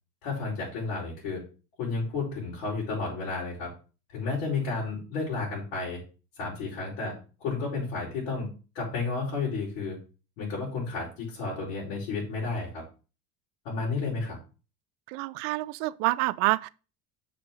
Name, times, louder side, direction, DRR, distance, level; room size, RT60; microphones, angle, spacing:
voice 1, 0.2-1.4 1.8-3.7 4.1-6.0 6.4-8.5 8.7-10.0 10.4-12.8 13.6-14.4, left 4 dB, 75° left, 5.6 m, -32 dB
voice 2, 15.1-16.7, right 20 dB, 80° right, 0.6 m, -27 dB
7.1 x 5.1 x 6.1 m
cardioid pair, 145°, 38 cm